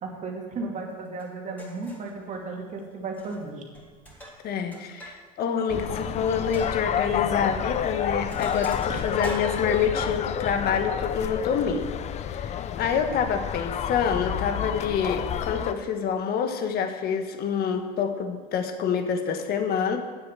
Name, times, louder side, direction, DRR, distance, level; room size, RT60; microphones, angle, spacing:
voice 1, 0.0-3.6 8.9-9.0, right 3 dB, 35° right, 0 dB, 2.5 m, -34 dB
Sink (filling or washing), 1.2-1.3 1.6-2.1 3.1-3.5 3.7-5.2 5.5-5.6 6.0-6.1 6.5-6.7 7.5-7.7 8.0-10.2, right 1 dB, 5° left, 3.5 m, -42 dB
voice 2, 4.4-20.0, left 7 dB, 50° left, 7 dB, 1.4 m, -27 dB
sound 1, 5.7-15.7, left 9 dB, 35° left, 0.5 m, -30 dB
9.6 x 7.7 x 7.5 m, 1.5 s
supercardioid pair, 100°, 21 cm